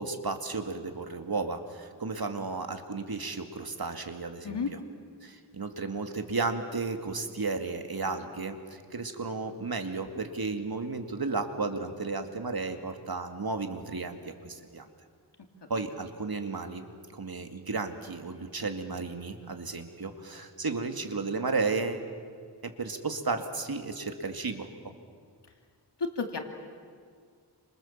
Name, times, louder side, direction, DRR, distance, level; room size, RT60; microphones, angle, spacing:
voice 1, 0.0-4.6 5.2-14.9 15.7-22.1 22.6-24.9, right 3 dB, 55° right, 6 dB, 2.4 m, -33 dB
voice 2, 26.0-26.4, left 5 dB, 70° left, 4 dB, 2.6 m, -31 dB
29.5 x 27.0 x 7.4 m, 2.1 s
wide cardioid pair, 80°, 43 cm